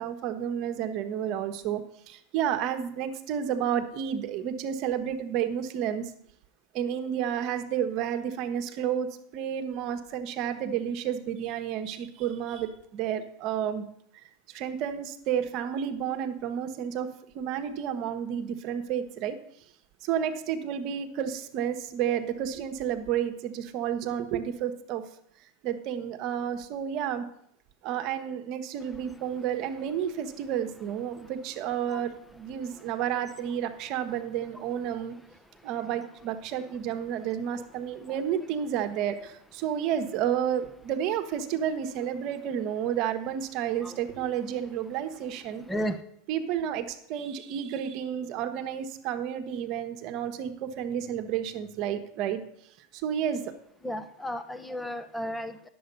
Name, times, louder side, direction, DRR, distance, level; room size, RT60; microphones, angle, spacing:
voice 1, 0.0-6.1 6.7-13.9 14.1-19.4 20.0-25.0 25.6-27.3 27.8-35.1 35.6-45.6 46.3-52.4 52.9-53.4, right 9 dB, 55° right, 8 dB, 1.1 m, -31 dB
voice 2, 45.7-46.0 53.8-55.7, equal, 5° left, 10 dB, 0.9 m, -34 dB
10.0 x 7.1 x 5.3 m, 0.69 s
hypercardioid pair, 105°, 0 cm